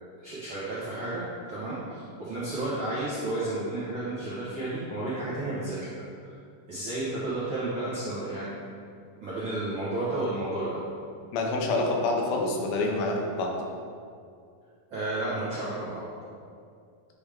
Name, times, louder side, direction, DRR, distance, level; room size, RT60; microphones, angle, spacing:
voice 1, 0.2-6.3 6.7-8.5 9.2-10.8 14.9-16.1, right 2 dB, 80° right, -10 dB, 1.1 m, -32 dB
voice 2, 11.3-13.6, left 2 dB, 80° left, 0 dB, 2.5 m, -27 dB
9.8 x 3.5 x 3.5 m, 2.3 s
omnidirectional pair, 4.3 m